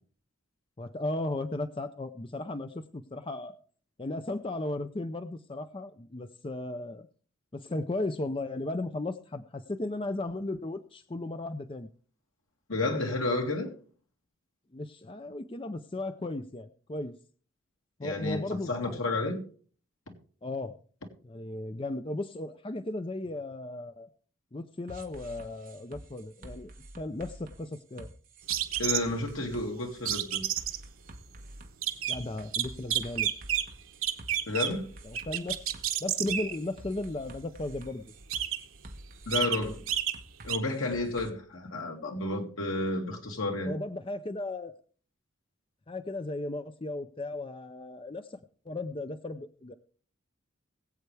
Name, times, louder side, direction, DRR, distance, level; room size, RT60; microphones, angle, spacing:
voice 1, 0.8-3.6 4.0-7.1 7.5-11.9 14.7-17.1 18.0-19.0 20.4-20.8 21.2-24.1 24.5-26.7 27.0-28.1 32.1-33.3 35.0-35.6 36.0-38.0 43.6-44.7 45.9-48.4 48.7-49.8, left 2 dB, 25° left, 0.5 m, -35 dB
voice 2, 12.7-13.7 18.0-19.4 20.1-20.2 28.8-30.4 34.5-34.9 39.3-39.8 40.4-43.8, left 2 dB, 80° left, 2.4 m, -31 dB
sound 1, 24.9-41.3, right 1 dB, 40° right, 1.3 m, -48 dB
sound 2, 28.5-29.2 30.1-30.8 31.7-32.2 32.5-33.7 34.0-34.8 35.1-36.6 37.8-37.9 38.2-38.8 39.1-39.6 39.9-40.2 40.5-40.6, right 10 dB, 85° right, 1.0 m, -30 dB
21.5 x 8.0 x 3.4 m
head